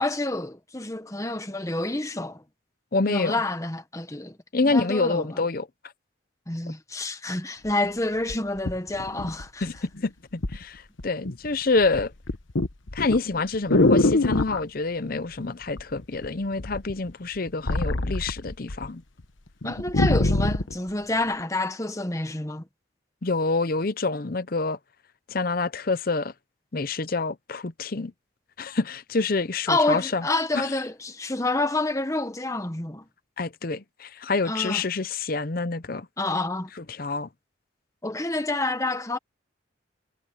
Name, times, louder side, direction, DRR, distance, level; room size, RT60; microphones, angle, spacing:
voice 1, 0.0-2.4 3.0-4.4 4.6-5.4 6.5-9.6 19.6-22.6 29.7-33.0 34.4-34.8 36.2-36.7 38.0-39.2, left 2 dB, 15° left, 1.2 m, -28 dB
voice 2, 2.9-3.3 4.5-5.7 9.6-12.1 12.9-19.0 23.2-24.8 25.3-26.3 26.7-28.1 28.6-30.2 30.5-30.7 33.4-36.1 36.8-37.3, left 3 dB, 50° left, 0.7 m, -27 dB
sound 1, 7.7-7.8 8.3-9.8 10.4-10.6 11.0-11.5 11.8-14.6 15.8-16.3 16.6-18.9 19.2-19.3 19.6-20.7 21.4-21.5, left 2 dB, 80° left, 1.2 m, -24 dB
head